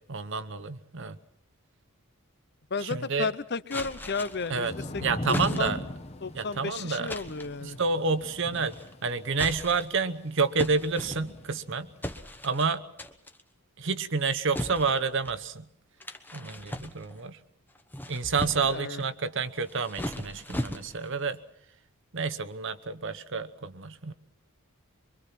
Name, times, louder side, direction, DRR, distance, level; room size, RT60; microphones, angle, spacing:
voice 1, 0.1-1.2 2.8-3.3 4.5-4.7 5.0-5.8 6.3-7.1 7.6-8.7 9.0-11.9 12.4-12.8 13.8-15.6 16.3-17.4 18.1-21.4 22.1-24.1, right 4 dB, 55° right, 12 dB, 1.0 m, -29 dB
voice 2, 2.7-5.0 5.3-5.7 6.2-7.8 18.6-19.0, left 4 dB, 50° left, 16 dB, 0.8 m, -33 dB
Thunder / Rain, 3.7-12.1, left 1 dB, 30° left, 1.2 m, -39 dB
sound 1, 3.7-4.6 5.3-5.9 7.1-7.6 8.5-8.9 9.3-10.0 10.6-11.5 12.0-12.7 13.0-13.4 14.5-15.4 16.0-17.3 17.7-18.8 19.6-21.1, left 1 dB, 10° left, 1.0 m, -37 dB
24.0 x 24.0 x 5.9 m, 0.77 s
head